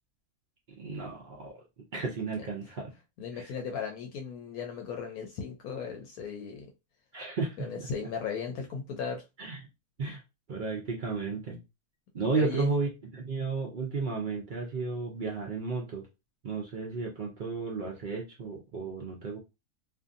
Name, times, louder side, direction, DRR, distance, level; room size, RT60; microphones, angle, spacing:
voice 1, 0.8-1.6 1.9-2.9 3.3-3.5 7.1-7.7 9.4-9.6 10.0-10.2 10.5-11.6 12.1-16.0 16.4-19.4, right 4 dB, 85° right, 0.4 m, -33 dB
voice 2, 3.2-6.7 7.6-9.2 12.3-12.8, left 5 dB, 75° left, 1.0 m, -36 dB
2.6 x 2.6 x 2.5 m
omnidirectional pair, 1.7 m